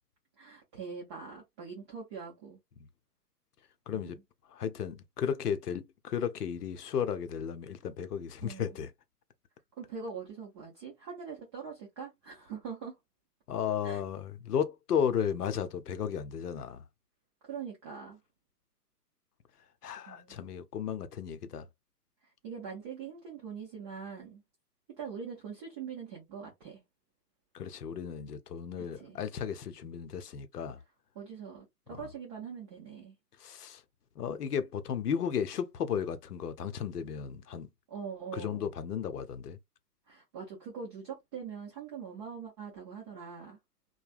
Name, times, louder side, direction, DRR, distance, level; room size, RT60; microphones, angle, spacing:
voice 1, 0.4-2.6 3.9-4.2 8.4-8.8 9.8-13.0 13.8-14.0 17.4-18.2 20.1-20.4 22.4-24.4 25.0-26.8 28.8-29.2 31.1-33.1 37.9-38.7 40.1-43.6, right 6 dB, 20° right, 0.6 m, -43 dB
voice 2, 3.9-4.2 4.5-8.9 13.5-16.8 19.8-21.7 27.5-30.8 31.9-32.0 33.4-33.8 34.2-37.7 38.3-39.6, left 8 dB, 70° left, 0.7 m, -34 dB
3.2 x 2.2 x 2.4 m
figure-of-eight pair, 130°, 48 cm